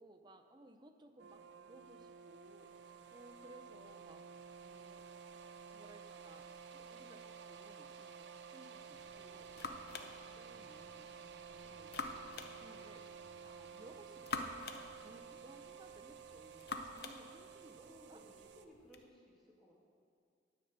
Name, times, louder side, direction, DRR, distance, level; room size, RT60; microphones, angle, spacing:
voice 1, 0.0-4.3 4.6-5.0 5.7-11.9 12.6-18.2, right 1 dB, 25° right, 7 dB, 0.5 m, -61 dB
sound 1, 1.2-18.7, right 6 dB, 85° right, 0.5 m, -53 dB
sound 2, 8.9-19.0, left 3 dB, 60° left, 0.7 m, -49 dB
voice 2, 11.4-11.7 17.8-19.7, equal, ahead, -6 dB, 1.9 m, -61 dB
9.9 x 5.5 x 8.0 m, 2.4 s
head